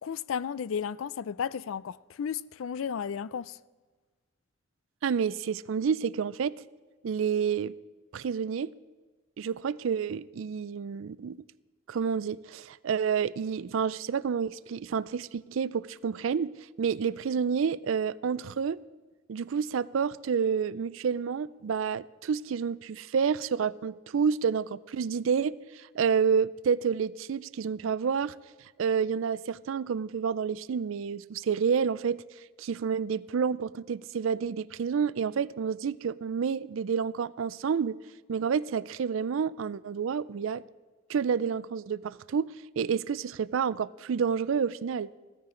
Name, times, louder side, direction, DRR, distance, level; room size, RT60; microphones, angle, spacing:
voice 1, 0.0-3.6, left 7 dB, 80° left, 0.4 m, -33 dB
voice 2, 5.0-6.6 7.0-7.7 8.1-8.7 9.4-11.4 11.9-18.8 19.3-28.4 28.8-32.2 32.6-38.0 38.3-40.6 41.1-45.1, right 6 dB, 75° right, 0.4 m, -29 dB
15.5 x 14.0 x 3.8 m
head